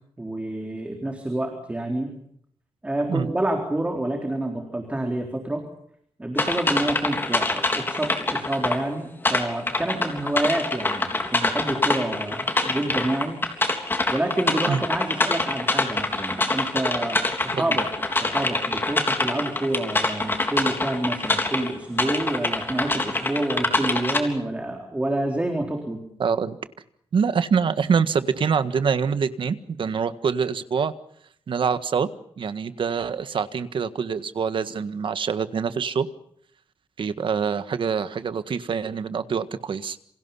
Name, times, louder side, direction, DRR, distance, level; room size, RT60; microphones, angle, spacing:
voice 1, 0.2-2.1 2.8-5.6 6.2-13.4 14.1-26.0, right 1 dB, 10° right, 3 dB, 3.9 m, -28 dB
sound 1, 6.4-8.8 9.2-21.7 22.0-24.2, left 2 dB, 20° left, 3.6 m, -25 dB
voice 2, 26.2-26.6 27.1-30.9 31.5-32.1 32.4-36.1 37.0-40.0, right 6 dB, 55° right, 11 dB, 1.6 m, -25 dB
28.5 x 27.5 x 5.7 m, 0.70 s
wide cardioid pair, 170°, 10 cm